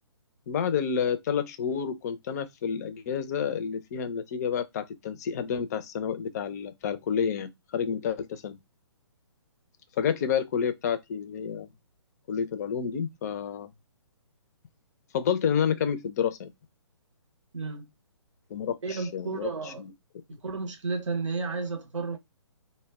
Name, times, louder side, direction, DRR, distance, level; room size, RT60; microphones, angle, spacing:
voice 1, 0.5-8.6 10.0-11.7 12.3-13.7 15.1-16.5 18.5-19.9, left 7 dB, 35° left, 0.4 m, -29 dB
voice 2, 17.5-17.9 18.8-19.8 20.3-22.2, right 4 dB, 85° right, 0.8 m, -32 dB
2.1 x 2.1 x 3.4 m
hypercardioid pair, 145°, 15 cm